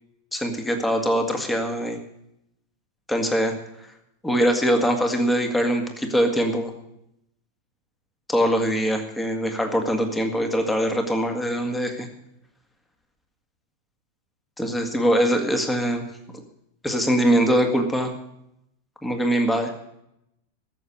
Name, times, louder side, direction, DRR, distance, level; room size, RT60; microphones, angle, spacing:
voice 1, 0.3-2.0 3.1-3.5 4.2-6.7 8.3-12.1 14.6-16.1 16.8-18.1 19.0-19.7, equal, 5° left, 5 dB, 1.9 m, -22 dB
13.5 x 7.3 x 9.7 m, 0.81 s
figure-of-eight pair, 90°, 0 cm